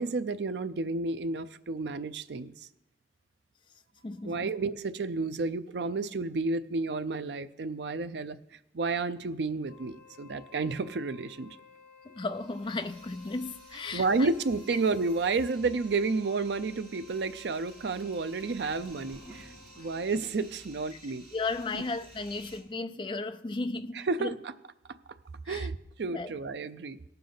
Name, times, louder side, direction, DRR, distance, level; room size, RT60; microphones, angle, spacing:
voice 1, 0.0-2.5 4.2-8.4 8.7-11.5 13.9-19.5 19.8-21.3 23.9-24.5 25.5-27.0, right 3 dB, 75° right, 0.5 m, -31 dB
voice 2, 4.0-4.5 12.0-14.3 21.3-24.4 25.5-25.7 26.1-26.3, left 3 dB, 25° left, 0.4 m, -35 dB
Wind instrument woodwind instrument, 9.6-20.2, left 5 dB, 75° left, 3.3 m, -56 dB
sound 1, 12.2-22.6, right 2 dB, 30° right, 2.2 m, -54 dB
sound 2, 18.1-21.1, right 1 dB, ahead, 3.1 m, -56 dB
18.0 x 6.8 x 3.9 m
head